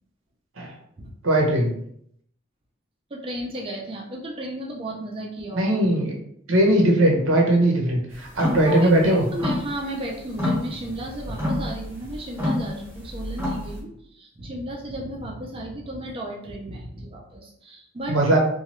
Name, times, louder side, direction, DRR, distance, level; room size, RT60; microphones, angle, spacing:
voice 1, 1.2-1.7 5.5-6.1 6.5-9.3 18.1-18.4, right 1 dB, 85° right, 0 dB, 0.8 m, -19 dB
voice 2, 3.1-5.7 8.6-18.2, right 1 dB, 30° right, -1 dB, 0.5 m, -34 dB
sound 1, 8.3-8.7 9.0-10.0 10.3-13.8, left 1 dB, 10° right, 1.0 m, -28 dB
2.9 x 2.2 x 3.0 m, 0.70 s
head